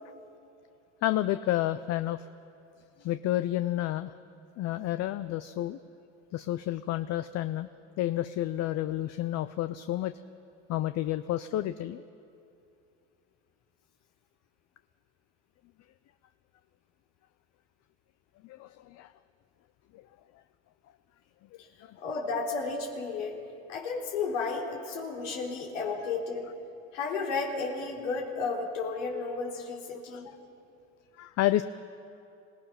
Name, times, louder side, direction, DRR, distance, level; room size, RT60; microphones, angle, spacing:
voice 1, 1.0-2.3 3.0-4.1 4.6-5.8 6.3-7.7 8.0-10.1 10.7-12.0 18.4-19.1 19.9-20.0 21.8-22.0 30.1-30.2 31.2-31.6, left 14 dB, 45° left, 12 dB, 0.6 m, -30 dB
voice 2, 22.0-23.4 23.7-26.5 26.9-30.4, left 4 dB, 85° left, -2 dB, 3.8 m, -33 dB
26.0 x 17.5 x 5.8 m, 2.6 s
supercardioid pair, 105°, 36 cm